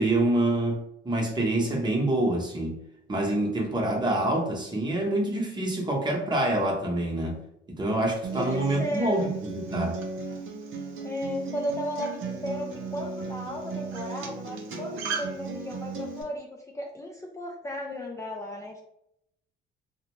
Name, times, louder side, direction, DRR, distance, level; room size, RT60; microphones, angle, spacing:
voice 1, 0.0-2.8 3.1-7.4 7.8-10.0, right 1 dB, 20° right, -1 dB, 0.8 m, -26 dB
Acoustic guitar, 8.2-16.2, right 4 dB, 85° right, 0.5 m, -35 dB
voice 2, 8.3-9.3 11.0-18.8, equal, 15° left, -1 dB, 0.3 m, -35 dB
2.7 x 2.1 x 3.0 m, 0.79 s
cardioid pair, 90°, 20 cm